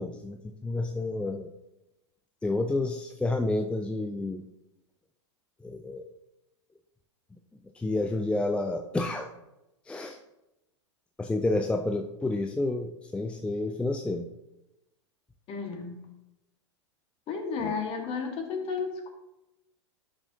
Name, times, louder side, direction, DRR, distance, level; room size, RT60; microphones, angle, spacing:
voice 1, 0.0-1.5 2.4-4.5 5.6-6.0 7.7-9.3 9.9-10.2 11.2-14.3 17.6-17.7, left 2 dB, 5° left, 5 dB, 0.5 m, -30 dB
voice 2, 15.5-16.1 17.3-19.1, left 5 dB, 40° left, 4 dB, 1.7 m, -33 dB
12.5 x 6.2 x 2.8 m, 0.92 s
figure-of-eight pair, 95°, 15 cm